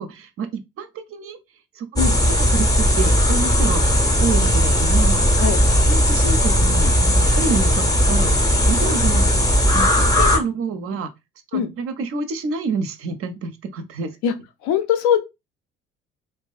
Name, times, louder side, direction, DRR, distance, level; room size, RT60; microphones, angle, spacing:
voice 1, 0.0-1.4 1.8-3.8 4.2-5.2 5.8-9.3 9.7-11.1 11.5-14.1, right 4 dB, 40° right, 0.5 m, -28 dB
sound 1, 2.0-10.4, equal, 10° left, 0.6 m, -17 dB
voice 2, 14.6-15.2, left 8 dB, 60° left, 0.5 m, -20 dB
2.4 x 2.3 x 2.2 m
figure-of-eight pair, 50°, 35 cm